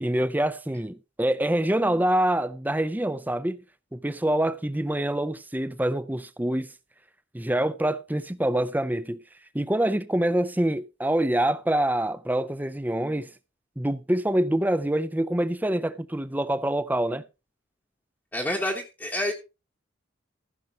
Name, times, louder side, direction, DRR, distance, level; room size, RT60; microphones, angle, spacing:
voice 1, 0.0-3.6 3.9-6.7 7.3-9.2 9.5-13.3 13.8-17.2, right 1 dB, 10° right, 0.5 m, -25 dB
voice 2, 18.3-19.3, left 1 dB, 10° left, 1.1 m, -28 dB
15.0 x 6.4 x 4.4 m
head